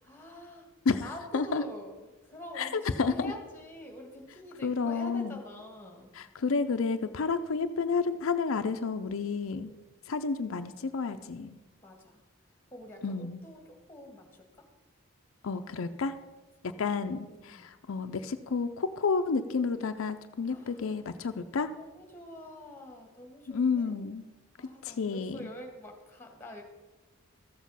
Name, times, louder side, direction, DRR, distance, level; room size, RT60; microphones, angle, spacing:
voice 1, 0.0-0.7 1.0-6.1 11.8-12.2 12.7-14.7 17.3-17.7 20.5-21.0 21.8-24.1 24.6-26.6, left 1 dB, 10° left, 2 dB, 1.7 m, -46 dB
voice 2, 2.6-3.3 4.6-5.4 6.2-9.7 10.1-11.6 13.0-13.4 15.4-16.2 16.8-21.7 23.5-24.2 24.8-25.4, left 4 dB, 75° left, 8 dB, 0.5 m, -30 dB
13.5 x 7.3 x 5.6 m, 1.2 s
head